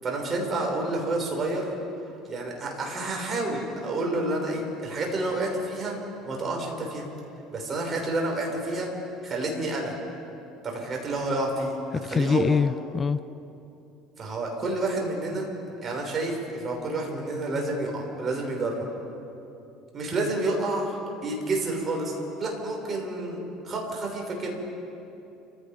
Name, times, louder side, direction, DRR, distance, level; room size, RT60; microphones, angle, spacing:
voice 1, 0.0-1.7 2.2-6.0 6.2-7.1 7.5-8.9 9.2-9.9 10.6-11.8 12.0-12.6 14.2-15.5 15.8-18.8 19.9-21.0 21.2-23.4 23.6-24.5, right 2 dB, 35° right, 6.1 m, -29 dB
voice 2, 11.9-13.2, left 5 dB, 30° left, 0.4 m, -24 dB
30.0 x 16.5 x 5.3 m
supercardioid pair, 90°, 0 cm